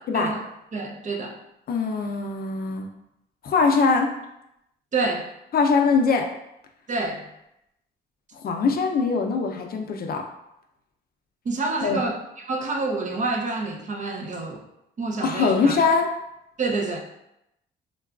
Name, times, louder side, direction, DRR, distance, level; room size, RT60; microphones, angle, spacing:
voice 1, 0.7-1.4 4.9-5.3 6.9-7.3 11.4-12.2 12.4-14.6 15.0-15.8 16.6-17.0, right 3 dB, 40° right, 2 dB, 0.5 m, -27 dB
voice 2, 1.7-2.9 3.4-4.1 5.5-6.2 8.3-10.2 11.8-12.0 15.2-16.1, left 4 dB, 50° left, 3 dB, 0.5 m, -22 dB
3.9 x 2.3 x 2.3 m, 0.83 s
cardioid pair, 90°, 20 cm